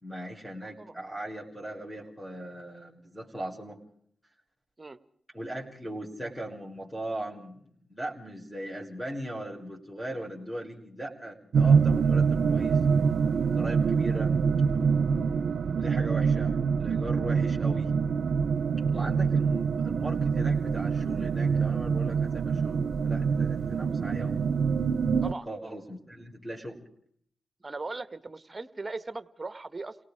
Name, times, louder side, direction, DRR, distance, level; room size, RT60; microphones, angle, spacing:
voice 1, 0.0-3.8 5.3-12.8 13.6-14.3 15.8-17.9 18.9-24.4 25.5-26.8, right 1 dB, 10° left, -1 dB, 5.2 m, -39 dB
sound 1, 11.5-25.3, right 6 dB, 75° right, 0.8 m, -25 dB
voice 2, 27.6-30.0, right 3 dB, 30° right, 13 dB, 1.6 m, -38 dB
29.5 x 18.0 x 4.9 m, 0.63 s
supercardioid pair, 45°, 0 cm